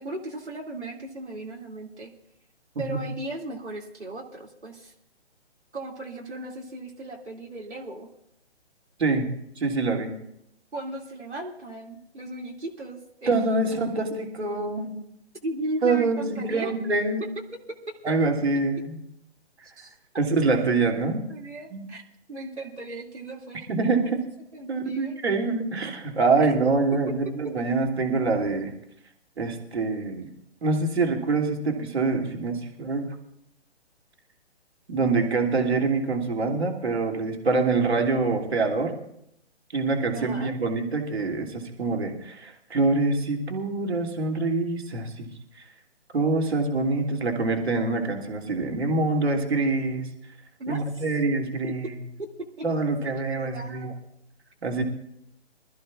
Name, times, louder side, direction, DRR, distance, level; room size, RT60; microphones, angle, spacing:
voice 1, 0.0-2.1 2.8-4.9 5.7-8.1 10.7-14.0 15.4-16.7 19.8-20.0 20.5-20.6 21.3-22.0 22.3-23.7 24.5-25.2 26.4-26.5 40.1-40.6 50.6-51.0 53.0-54.0, right 1 dB, 80° right, -2 dB, 2.6 m, -37 dB
voice 2, 9.6-10.1 13.3-15.0 15.8-17.3 18.0-19.0 20.2-21.2 21.7-21.8 23.7-24.2 24.7-28.7 29.4-30.3 30.6-33.1 34.9-39.0 39.7-45.3 46.1-50.1 50.7-51.9 52.6-53.9 54.6-54.8, right 3 dB, 65° right, 2 dB, 2.9 m, -25 dB
25.5 x 14.0 x 2.5 m, 0.75 s
figure-of-eight pair, 140°, 34 cm